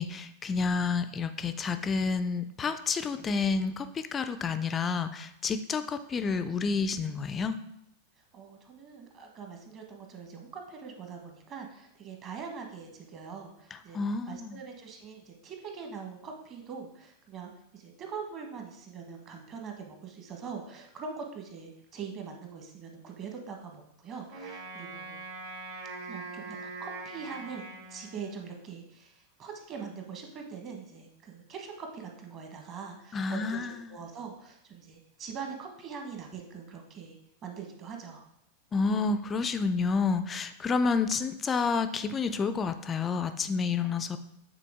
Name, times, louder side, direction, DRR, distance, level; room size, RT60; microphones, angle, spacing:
voice 1, 0.0-7.6 13.9-14.6 33.1-34.0 38.7-44.2, left 4 dB, 20° left, 10 dB, 0.4 m, -29 dB
voice 2, 8.3-14.0 14.3-25.1 26.0-38.3 43.8-44.2, right 6 dB, 35° right, 3 dB, 1.2 m, -43 dB
Wind instrument woodwind instrument, 24.3-28.7, right 3 dB, 55° right, 1.8 m, -42 dB
8.2 x 3.9 x 3.6 m, 0.80 s
figure-of-eight pair, 90°, 0 cm